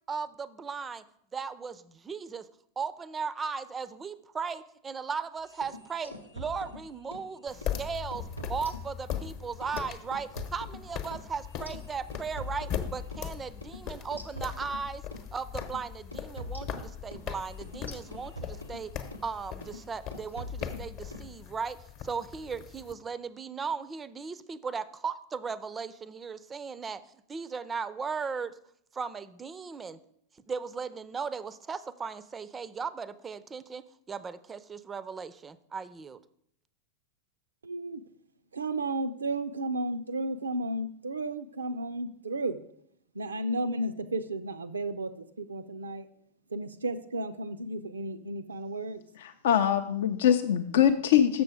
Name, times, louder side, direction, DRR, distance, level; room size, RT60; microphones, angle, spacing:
voice 1, 0.1-1.0 1.3-2.5 2.8-15.0 15.3-18.9 19.2-21.8 22.0-27.0 27.3-28.5 28.9-30.0 30.5-36.2, right 5 dB, 20° right, 16 dB, 0.4 m, -37 dB
sound 1, 5.5-7.3 7.6-7.8 8.1-9.3 9.6-13.3 13.6-13.8 14.1-15.3 15.6-15.8 16.1-19.3 19.6-19.9 20.1-21.3, left 2 dB, 85° left, 0.7 m, -43 dB
sound 2, 7.5-22.9, left 9 dB, 40° left, 0.8 m, -40 dB
voice 2, 37.6-38.0 38.5-42.6 43.1-46.1 46.5-49.0, right 2 dB, 75° right, 10 dB, 0.5 m, -33 dB
voice 3, 49.2-51.4, left 10 dB, 60° left, 7 dB, 0.4 m, -23 dB
6.9 x 6.6 x 4.8 m, 0.71 s
figure-of-eight pair, 90°, 0 cm